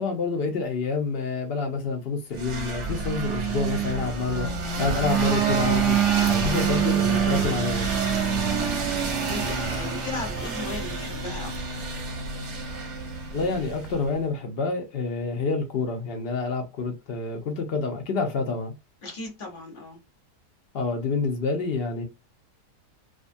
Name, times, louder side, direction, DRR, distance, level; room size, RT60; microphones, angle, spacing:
voice 1, 0.0-4.5 4.8-6.0 6.3-7.9 13.3-18.7 20.7-22.0, left 4 dB, 80° left, 0.5 m, -28 dB
sound 1, 2.4-14.1, right 6 dB, 60° right, 0.8 m, -26 dB
voice 2, 8.6-8.9 9.3-11.8 19.0-20.0, left 2 dB, 40° left, 0.9 m, -37 dB
2.5 x 2.4 x 2.5 m
omnidirectional pair, 1.7 m